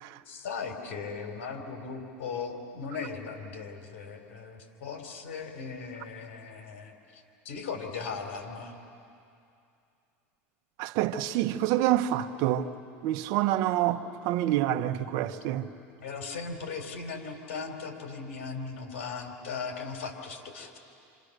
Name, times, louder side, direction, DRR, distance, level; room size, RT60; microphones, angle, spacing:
voice 1, 0.3-8.8 16.0-20.8, left 5 dB, 80° left, 3.9 m, -38 dB
voice 2, 10.8-12.7 13.0-15.7, right 13 dB, 65° right, 1.1 m, -27 dB
28.5 x 27.0 x 6.7 m
supercardioid pair, 105°, 7 cm